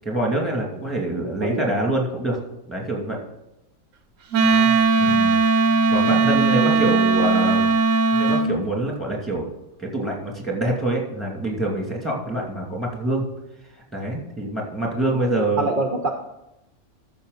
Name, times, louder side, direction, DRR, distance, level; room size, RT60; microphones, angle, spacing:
voice 1, 0.0-2.4 2.7-3.2 5.0-5.4 5.9-7.7 8.1-9.5 9.8-13.3 13.9-15.7, right 1 dB, ahead, -2 dB, 2.5 m, -25 dB
voice 2, 1.4-1.7 4.4-4.8 5.0-5.2 6.1-7.5 15.0-15.3 15.6-16.1, right 3 dB, 45° right, 3 dB, 1.0 m, -29 dB
Wind instrument woodwind instrument, 4.3-8.5, right 3 dB, 85° right, 1.2 m, -18 dB
13.5 x 6.3 x 4.0 m, 0.89 s
omnidirectional pair, 1.3 m